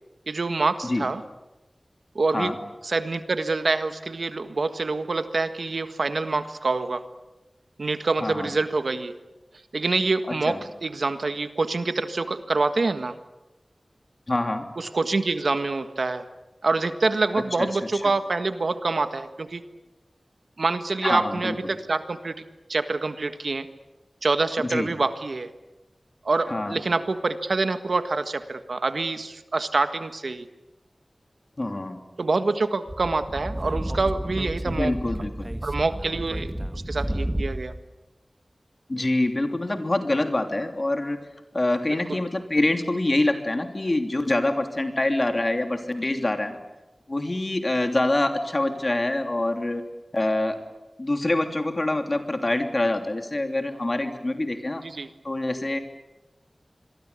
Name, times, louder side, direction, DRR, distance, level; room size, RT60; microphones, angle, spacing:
voice 1, 0.3-1.2 2.1-2.5 2.8-7.0 7.8-9.1 9.7-13.1 14.8-16.2 16.6-19.6 20.6-22.3 22.7-23.7 24.2-25.5 26.2-30.5 32.2-34.9 35.6-37.7 42.1-42.2 54.8-55.1, right 3 dB, 80° right, 9 dB, 1.6 m, -26 dB
voice 2, 10.2-10.6 14.3-14.7 17.3-17.4 21.0-21.7 24.6-24.9 26.5-26.8 31.6-32.0 34.6-35.5 38.9-41.2 41.5-46.6 47.1-49.8 50.1-50.6 51.0-54.8 55.2-55.8, left 2 dB, 40° left, 6 dB, 3.1 m, -25 dB
Speech / Wind, 32.9-37.8, right 1 dB, 15° right, 1.6 m, -31 dB
27.0 x 22.5 x 8.4 m, 1.1 s
wide cardioid pair, 75°, 0 cm